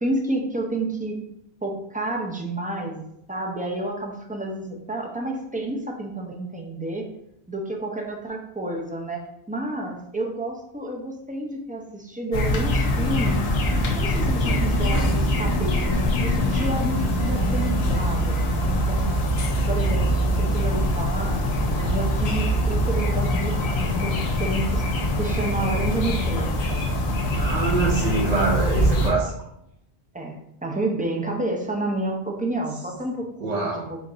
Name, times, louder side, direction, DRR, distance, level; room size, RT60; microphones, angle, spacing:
voice 1, 0.0-1.2 1.6-7.1 7.5-13.5 14.0-19.1 19.7-21.4 21.7-24.8 25.2-26.5 30.1-34.0, right 2 dB, 10° right, 1 dB, 0.4 m, -30 dB
sound 1, 12.3-29.1, equal, 70° left, 0.9 m, -23 dB
voice 2, 27.4-29.3 33.4-33.9, right 4 dB, 40° right, -3 dB, 0.8 m, -25 dB
5.1 x 2.5 x 3.8 m, 0.78 s
omnidirectional pair, 1.1 m